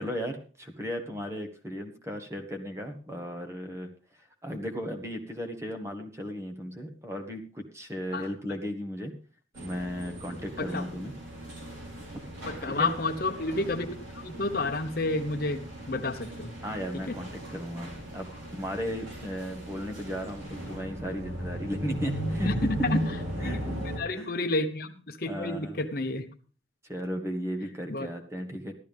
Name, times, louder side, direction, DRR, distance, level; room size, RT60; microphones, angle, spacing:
voice 1, 0.0-3.9 4.4-9.1 9.6-11.1 11.9-12.2 12.6-12.9 16.6-22.5 23.4-23.8 24.1-24.3 25.2-25.9 26.9-28.7, equal, 15° right, 4 dB, 1.4 m, -36 dB
sound 1, 9.6-24.0, right 1 dB, 85° right, 4.7 m, -37 dB
voice 2, 12.5-13.9 14.1-15.6 15.9-16.5 17.1-17.2 22.5-23.0 23.4-23.6 23.9-26.3 27.9-28.1, left 2 dB, 50° left, 7 dB, 1.0 m, -30 dB
14.5 x 12.5 x 3.6 m, 0.39 s
head